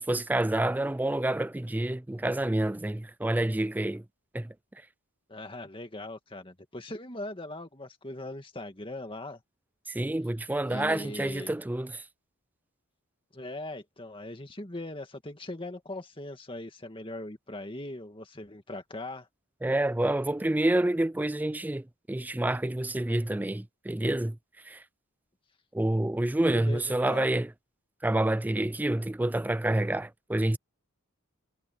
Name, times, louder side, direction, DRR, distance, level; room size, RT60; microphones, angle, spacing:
voice 1, 0.0-4.0 4.3-4.5 9.9-12.0 19.6-24.4 24.7-24.8 25.7-27.5 28.0-30.6, right 1 dB, 10° right, 0.3 m, -28 dB
voice 2, 5.3-9.4 10.7-11.5 13.3-19.3 26.5-27.3, left 1 dB, 25° left, 2.2 m, -40 dB
head